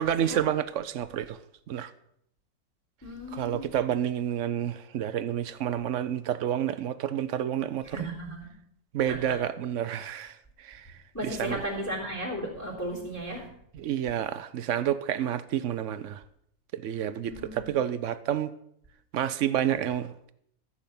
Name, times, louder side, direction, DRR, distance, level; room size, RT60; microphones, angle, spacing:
voice 1, 0.0-1.4 1.7-1.9 3.3-8.1 8.9-10.9 11.2-11.6 13.7-16.2 16.7-18.5 19.1-20.3, right 10 dB, 65° right, 0.8 m, -29 dB
voice 2, 3.0-3.6 7.9-8.5 9.1-9.4 11.1-13.5 17.3-17.7, right 1 dB, 10° left, 3.3 m, -35 dB
14.0 x 7.8 x 5.9 m
omnidirectional pair, 1.8 m